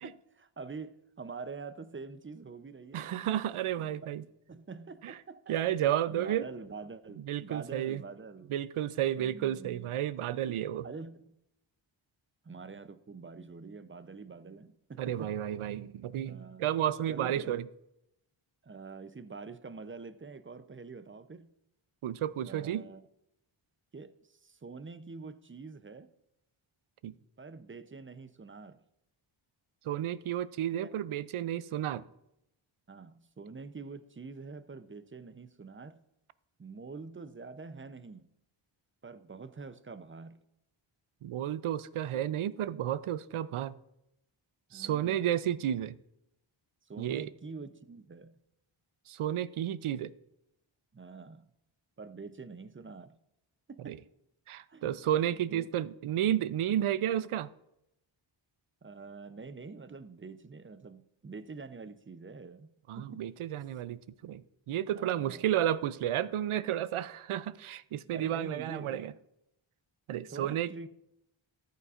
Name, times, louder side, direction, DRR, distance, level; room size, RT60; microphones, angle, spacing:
voice 1, 0.0-3.3 4.5-5.6 6.1-8.5 9.1-9.9 10.8-11.3 12.4-15.4 16.3-16.6 17.1-17.7 18.6-21.6 22.4-23.0 23.9-26.1 27.4-28.8 30.8-30.9 32.9-36.0 36.6-38.3 39.0-40.5 44.7-45.3 46.8-48.4 50.9-51.5 52.0-53.2 53.7-54.0 54.7-55.0 55.5-55.7 58.8-63.3 64.9-65.5 68.1-69.1 70.3-70.9, right 4 dB, 25° right, 0.6 m, -46 dB
voice 2, 2.9-4.2 5.0-5.1 5.5-6.4 7.3-8.0 8.5-10.9 15.0-17.6 22.0-22.8 27.0-27.1 29.9-32.0 41.2-43.7 44.7-46.0 47.0-47.3 49.1-50.1 53.8-54.0 54.5-57.5 62.9-64.4 64.7-69.1 70.1-70.7, right 11 dB, 80° right, 0.5 m, -32 dB
13.5 x 8.4 x 2.5 m
cardioid pair, 60°, 50 cm